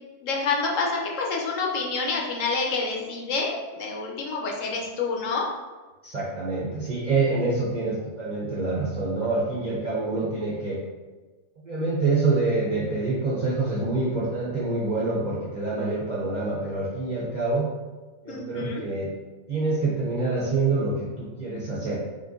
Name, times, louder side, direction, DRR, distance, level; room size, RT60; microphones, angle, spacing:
voice 1, 0.2-5.5 18.3-18.8, left 4 dB, 65° left, 0 dB, 1.0 m, -28 dB
voice 2, 6.0-10.8 11.7-17.7 18.2-19.1 19.5-22.0, right 3 dB, 45° right, -7 dB, 0.6 m, -26 dB
3.7 x 2.6 x 3.6 m, 1.3 s
omnidirectional pair, 1.5 m